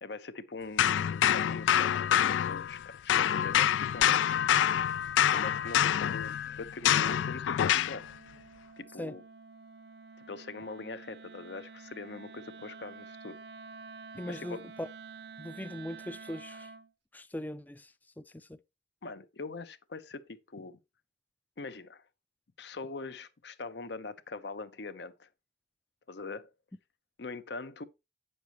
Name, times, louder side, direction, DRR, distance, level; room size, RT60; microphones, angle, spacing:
voice 1, 0.0-4.4 5.3-8.1 8.8-9.2 10.3-13.4 14.3-14.6 19.0-20.8 21.6-22.0 22.6-25.3 26.1-26.5 27.2-27.8, left 3 dB, 65° left, 0.7 m, -42 dB
sound 1, 0.8-2.8 3.1-8.0, left 10 dB, 90° left, 0.3 m, -26 dB
Wind instrument woodwind instrument, 5.4-16.9, right 4 dB, 60° right, 0.5 m, -50 dB
voice 2, 14.1-14.9 15.4-16.7 17.1-17.9 18.2-18.6, left 1 dB, 10° left, 0.4 m, -40 dB
9.3 x 6.7 x 2.9 m
head